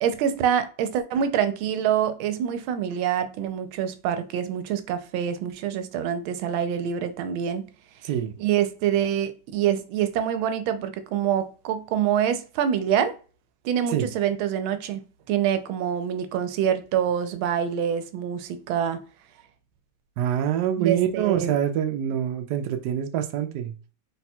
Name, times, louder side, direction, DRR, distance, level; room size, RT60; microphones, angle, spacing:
voice 1, 0.0-7.6 8.4-13.2 13.6-15.0 15.3-19.0 20.8-21.5, right 9 dB, 85° right, 1.4 m, -26 dB
voice 2, 8.0-8.3 13.9-14.1 20.2-23.7, right 10 dB, 70° right, 1.0 m, -25 dB
4.0 x 2.2 x 4.2 m
omnidirectional pair, 2.2 m